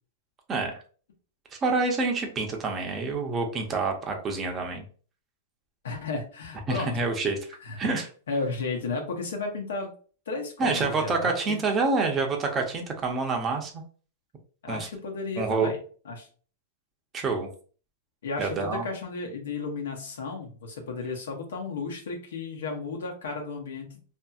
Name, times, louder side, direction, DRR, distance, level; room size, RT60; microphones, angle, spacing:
voice 1, 0.5-0.8 1.6-4.8 6.7-7.4 7.8-8.1 10.6-13.8 14.7-14.9 15.4-15.7 17.1-17.5 18.4-18.9, right 4 dB, 20° right, 3 dB, 0.6 m, -27 dB
voice 2, 5.8-7.1 7.6-7.8 8.3-9.9 10.3-11.6 14.6-15.8 16.0-16.3 18.2-24.0, left 3 dB, 90° left, 1 dB, 0.9 m, -33 dB
2.8 x 2.7 x 2.3 m, 0.41 s
supercardioid pair, 140°, 0 cm